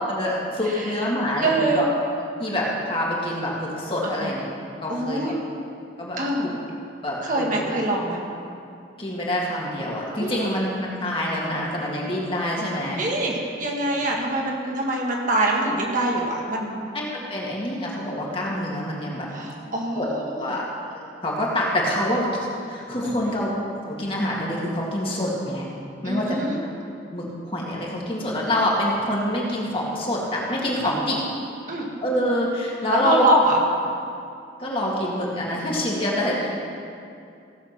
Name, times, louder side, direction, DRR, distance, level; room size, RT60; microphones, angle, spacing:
voice 1, 0.1-1.8 2.4-4.4 4.8-5.3 6.0-6.5 7.0-7.7 9.0-13.0 14.0-14.1 16.9-19.3 20.0-20.1 20.4-20.6 21.2-23.5 23.9-25.6 26.0-26.4 27.1-31.2 32.0-33.3 34.6-36.6, left 1 dB, 30° left, -4 dB, 2.2 m, -26 dB
voice 2, 0.6-1.1 1.4-1.8 4.0-4.3 4.9-5.4 6.2-6.5 7.2-8.2 10.2-10.5 13.0-16.8 19.3-20.5 23.0-23.4 26.0-26.6 30.8-30.9 31.7-31.9 32.9-33.6, right 1 dB, 45° right, -1 dB, 1.7 m, -24 dB
16.5 x 7.2 x 6.0 m, 2.5 s
head